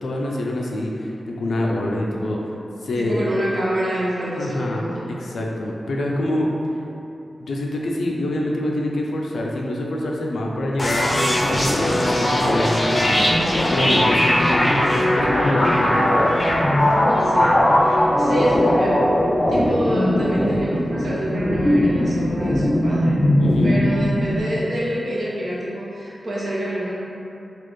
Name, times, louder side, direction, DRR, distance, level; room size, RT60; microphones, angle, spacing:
voice 1, 0.0-2.4 2.8-3.2 4.4-4.8 5.1-6.5 7.5-13.3 13.7-16.2 23.4-23.8, left 1 dB, 85° left, -1 dB, 0.4 m, -25 dB
voice 2, 3.0-5.1 17.2-23.2 23.6-27.0, right 1 dB, 70° right, -7 dB, 0.9 m, -27 dB
sound 1, 10.8-24.4, left 1 dB, 30° left, 0.5 m, -19 dB
4.1 x 2.4 x 3.1 m, 2.8 s
cardioid pair, 65°, 0 cm